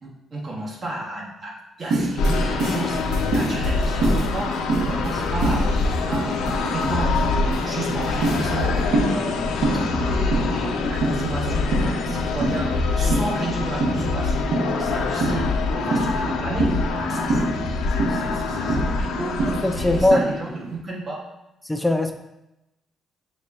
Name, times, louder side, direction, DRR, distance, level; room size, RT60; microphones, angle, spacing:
voice 1, 0.0-3.0 3.3-8.7 9.1-9.6 9.9-16.7 17.1-19.4 19.7-21.2, right 2 dB, 45° right, -3 dB, 1.1 m, -33 dB
sound 1, 1.8-20.7, right 2 dB, 80° right, 0.7 m, -27 dB
sound 2, 2.2-20.1, left 3 dB, 90° left, 0.3 m, -25 dB
voice 2, 19.6-20.2 21.7-22.1, left 1 dB, 10° left, 7 dB, 0.3 m, -19 dB
6.3 x 2.1 x 2.3 m, 0.91 s
cardioid pair, 90°, 0 cm